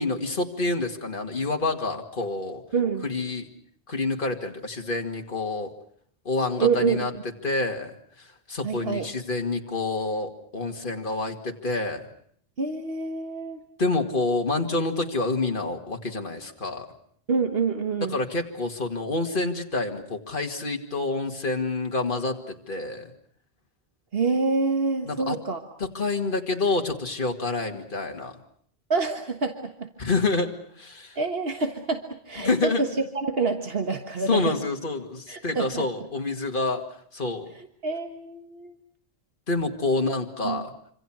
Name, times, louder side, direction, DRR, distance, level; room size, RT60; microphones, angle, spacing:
voice 1, 0.0-2.6 3.0-3.5 3.9-5.7 6.2-7.1 7.4-12.1 13.8-16.9 18.1-23.1 25.1-25.4 25.8-28.4 30.0-31.2 32.4-32.8 34.3-36.8 37.1-37.5 39.5-40.7, left 3 dB, 55° left, 3 dB, 2.4 m, -28 dB
voice 2, 2.7-3.1 6.6-7.2 8.6-9.1 12.6-13.6 17.3-18.2 24.1-25.6 28.9-29.9 31.2-34.5 35.3-35.9 37.8-38.8 40.4-40.6, right 4 dB, 70° right, 6 dB, 1.8 m, -27 dB
26.5 x 26.0 x 6.1 m, 0.62 s
omnidirectional pair, 1.0 m